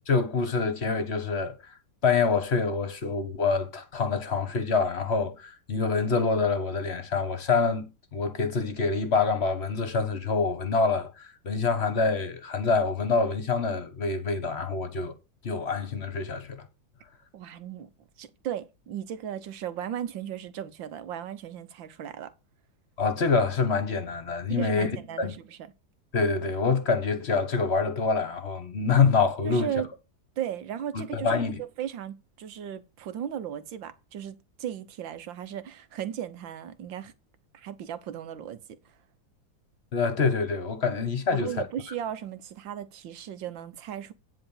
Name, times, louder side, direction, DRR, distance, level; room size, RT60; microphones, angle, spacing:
voice 1, 0.1-1.5 2.0-15.1 15.4-16.6 23.0-24.9 25.2-25.3 26.1-29.7 30.9-31.6 39.9-41.5, left 4 dB, 40° left, 1.4 m, -26 dB
voice 2, 17.3-17.9 18.2-22.3 24.5-25.6 29.4-29.9 30.4-31.3 31.6-37.1 37.5-38.6 41.3-44.1, right 10 dB, 85° right, 1.7 m, -36 dB
10.0 x 3.9 x 7.2 m
omnidirectional pair, 2.0 m